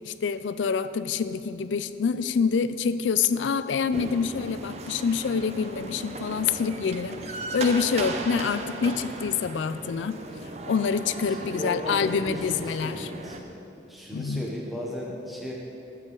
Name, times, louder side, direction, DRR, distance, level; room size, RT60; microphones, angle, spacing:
voice 1, 0.0-7.2 7.5-10.2 10.7-13.1 14.1-14.5, left 6 dB, 85° left, 13 dB, 0.4 m, -26 dB
sound 1, 3.9-13.4, right 2 dB, 35° right, 0.5 m, -37 dB
voice 2, 11.3-15.5, equal, ahead, -3 dB, 0.9 m, -36 dB
13.0 x 8.2 x 3.8 m, 2.9 s
head